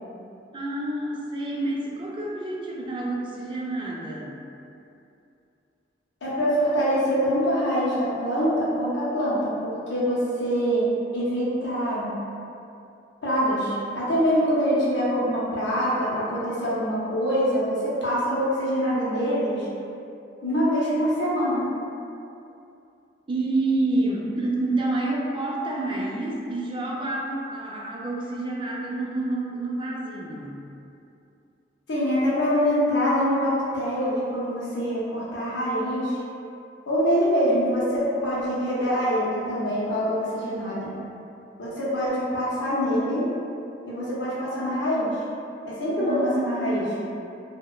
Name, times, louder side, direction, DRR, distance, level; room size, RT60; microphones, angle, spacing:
voice 1, 0.5-4.4 23.3-30.7 46.0-46.9, right 2 dB, 30° right, -3 dB, 0.3 m, -28 dB
voice 2, 6.2-12.1 13.2-19.7 20.4-21.7 31.9-36.2 36.9-40.9 41.6-43.3 43.8-45.2 45.6-46.9, equal, 70° left, -8 dB, 0.6 m, -24 dB
2.8 x 2.1 x 2.3 m, 2.6 s
head